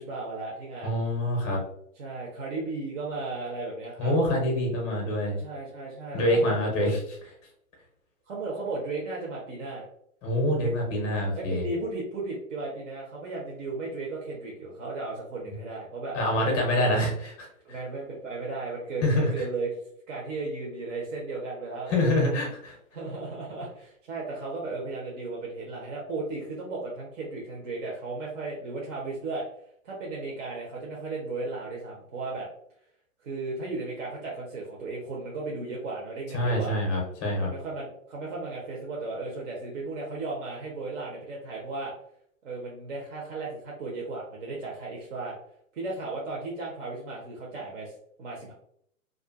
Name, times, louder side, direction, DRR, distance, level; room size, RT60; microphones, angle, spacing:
voice 1, 0.0-1.0 2.0-4.1 5.4-6.9 8.3-9.9 11.4-16.2 16.8-16.9 17.6-19.8 20.1-22.0 22.9-29.5 29.8-32.5 33.2-36.8 37.4-41.9 42.4-45.4 45.7-48.5, right 3 dB, 60° right, -3 dB, 0.8 m, -35 dB
voice 2, 0.8-1.6 4.0-5.4 6.1-7.0 10.2-11.7 16.1-17.1 17.4-17.5 19.0-19.4 21.9-22.8 36.3-37.5, left 1 dB, 15° left, 0 dB, 0.5 m, -25 dB
2.5 x 2.4 x 2.3 m, 0.70 s
hypercardioid pair, 135°, 42 cm